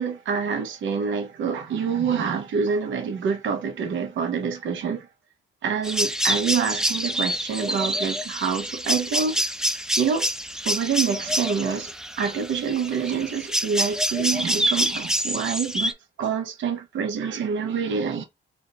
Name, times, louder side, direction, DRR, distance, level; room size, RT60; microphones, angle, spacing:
voice 1, 0.0-5.1 5.6-9.4 10.0-10.3 10.6-11.9 12.2-15.9 16.2-18.2, right 6 dB, 70° right, 1.0 m, -26 dB
sound 1, 5.8-15.9, equal, 5° right, 0.5 m, -27 dB
3.6 x 2.7 x 3.8 m
cardioid pair, 90°, 20 cm